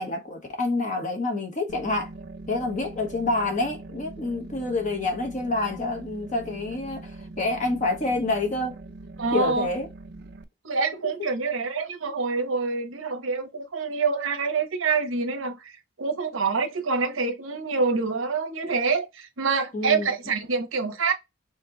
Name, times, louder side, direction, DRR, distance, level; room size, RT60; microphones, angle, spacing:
voice 1, 0.0-2.1 2.5-8.8 9.3-9.9 11.0-11.1 19.7-20.1, left 2 dB, 40° left, 1.1 m, -27 dB
sound 1, 1.7-10.4, right 2 dB, 55° right, 0.5 m, -42 dB
voice 2, 9.2-9.7 10.6-15.7 16.0-21.1, right 4 dB, 85° right, 1.0 m, -26 dB
4.4 x 2.8 x 3.8 m
head